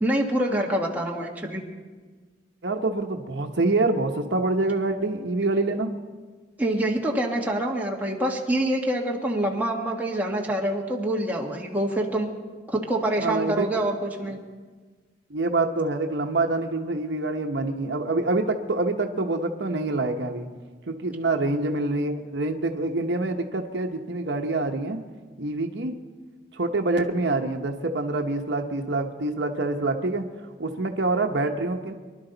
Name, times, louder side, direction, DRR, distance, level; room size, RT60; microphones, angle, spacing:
voice 1, 0.0-1.6 6.6-12.3 12.7-14.4, right 1 dB, 10° right, -2 dB, 1.6 m, -26 dB
voice 2, 2.6-5.9 13.2-13.7 14.2-14.3 15.3-20.5 20.9-25.0 25.4-25.9 26.5-30.2 30.6-31.9, right 2 dB, 70° right, 4 dB, 1.0 m, -26 dB
24.5 x 11.5 x 3.9 m, 1.4 s
head